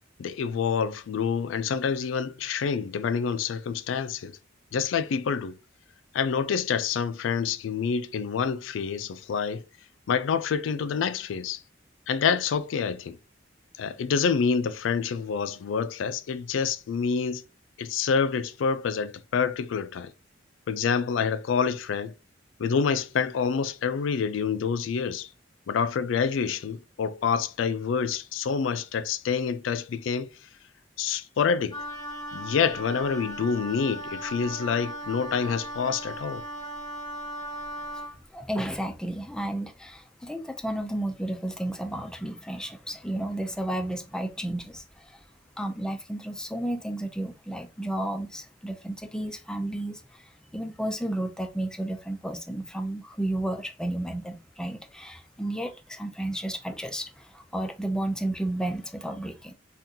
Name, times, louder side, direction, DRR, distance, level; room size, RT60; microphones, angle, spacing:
voice 1, 0.2-4.4 4.7-5.6 6.1-9.6 10.1-11.6 12.1-13.2 13.8-17.4 17.8-20.1 20.7-22.1 22.6-25.3 25.7-30.3 31.0-31.8 32.3-36.4, left 6 dB, 90° left, 0.4 m, -27 dB
Wind instrument woodwind instrument, 31.7-38.2, equal, 25° left, 1.1 m, -37 dB
voice 2, 38.3-45.2 45.6-50.2 50.5-59.5, right 1 dB, 5° left, 0.4 m, -32 dB
3.6 x 2.4 x 2.7 m
head